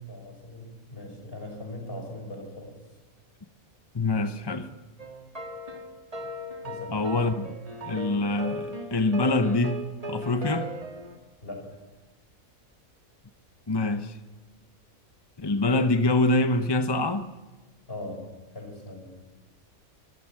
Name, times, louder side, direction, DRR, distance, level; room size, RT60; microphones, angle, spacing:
voice 1, 0.0-2.8 6.6-7.1 11.4-11.8 17.9-19.2, left 1 dB, 40° left, 6.1 m, -40 dB
voice 2, 3.9-4.7 6.9-7.5 7.8-10.7 13.7-14.2 15.4-17.3, left 2 dB, 25° left, 0.6 m, -25 dB
sound 1, 5.0-11.2, equal, 25° right, 2.3 m, -37 dB
23.5 x 15.5 x 7.6 m
omnidirectional pair, 1.5 m